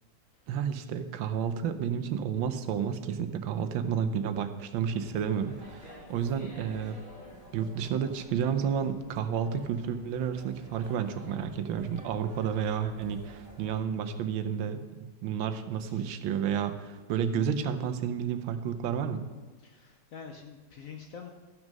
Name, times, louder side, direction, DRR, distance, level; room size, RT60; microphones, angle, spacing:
voice 1, 0.5-7.0 7.5-19.3, right 7 dB, 85° right, 8 dB, 1.5 m, -31 dB
sound 1, 4.7-13.8, equal, 45° left, 4.4 m, -51 dB
voice 2, 19.6-21.3, left 6 dB, 60° left, 3 dB, 0.9 m, -46 dB
13.5 x 6.2 x 5.2 m, 1.3 s
omnidirectional pair, 2.1 m